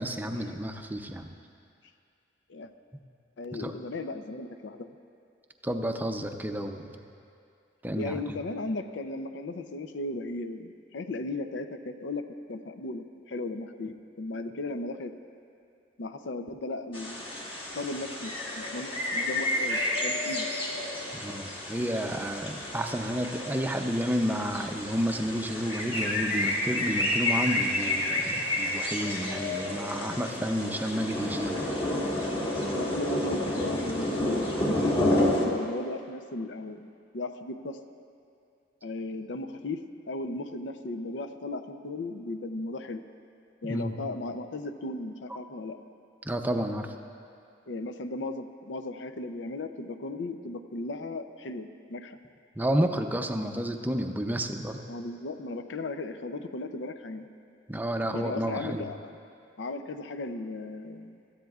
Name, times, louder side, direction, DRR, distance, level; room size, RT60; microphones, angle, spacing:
voice 1, 0.0-1.3 3.6-3.7 5.6-6.9 7.8-8.2 21.1-31.5 43.7-43.9 46.2-47.0 52.6-54.8 57.7-58.9, equal, 10° right, 5 dB, 0.5 m, -31 dB
voice 2, 3.4-4.9 7.9-15.1 16.0-17.2 17.7-20.5 32.8-36.8 37.1-37.8 38.8-39.8 40.1-43.0 43.6-45.8 47.7-52.2 54.9-57.3 58.1-59.1 59.6-61.2, left 2 dB, 75° left, 9 dB, 0.6 m, -36 dB
sound 1, 16.9-35.5, left 1 dB, 30° left, 1.6 m, -30 dB
18.0 x 13.5 x 2.4 m, 2.5 s
head